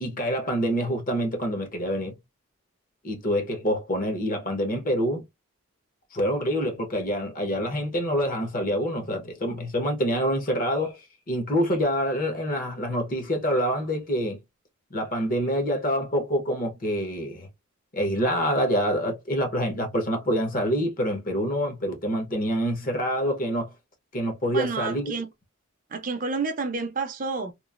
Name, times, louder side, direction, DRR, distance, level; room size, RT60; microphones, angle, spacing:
voice 1, 0.0-2.1 3.0-5.2 6.1-11.0 11.3-14.4 14.9-17.5 17.9-23.7 24.1-25.1, equal, 40° left, 0.8 m, -26 dB
voice 2, 24.5-25.3 25.9-27.5, right 4 dB, 40° right, 0.5 m, -29 dB
3.0 x 2.4 x 2.4 m
head